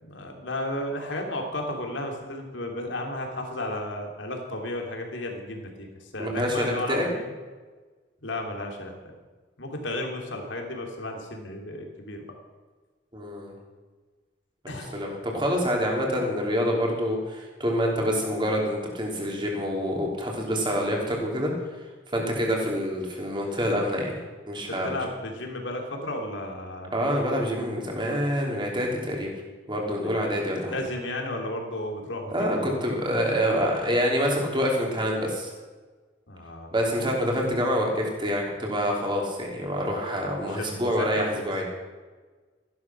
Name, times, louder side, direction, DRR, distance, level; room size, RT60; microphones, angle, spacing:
voice 1, 0.0-7.3 8.2-8.9 9.6-12.2 14.7-15.1 16.0-16.1 24.8-26.9 29.8-30.2 30.5-33.0 36.3-36.7 40.4-41.4, left 1 dB, 80° left, 2 dB, 3.0 m, -34 dB
voice 2, 6.2-7.1 13.1-13.5 14.6-21.5 22.1-24.1 24.5-25.0 26.9-29.3 29.7-30.8 32.3-35.5 36.7-41.7, equal, 25° right, -1 dB, 3.3 m, -26 dB
14.5 x 11.5 x 6.1 m, 1.4 s
head